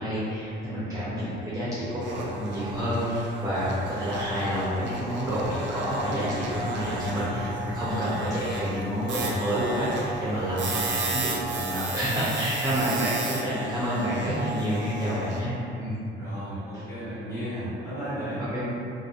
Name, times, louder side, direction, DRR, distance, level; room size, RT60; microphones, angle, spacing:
voice 1, 0.0-16.0 16.7-16.8 18.4-18.6, equal, 15° right, -11 dB, 0.5 m, -29 dB
sound 1, 2.0-15.4, right 2 dB, 65° right, 0.4 m, -34 dB
voice 2, 12.8-13.7 16.2-18.5, equal, 10° left, -15 dB, 1.4 m, -34 dB
2.5 x 2.1 x 2.4 m, 2.7 s
cardioid pair, 90°, 20 cm